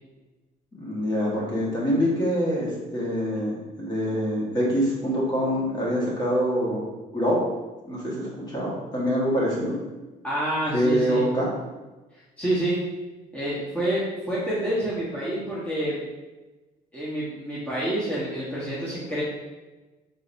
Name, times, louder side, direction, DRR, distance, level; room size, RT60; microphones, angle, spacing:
voice 1, 0.7-6.8 7.1-7.4 7.8-9.7 10.7-11.5, equal, 25° left, -5 dB, 1.4 m, -25 dB
voice 2, 10.2-11.2 12.4-12.8 13.3-16.0 16.9-19.2, right 1 dB, 10° left, -9 dB, 1.1 m, -28 dB
4.0 x 3.9 x 2.6 m, 1.2 s
cardioid pair, 110°, 17 cm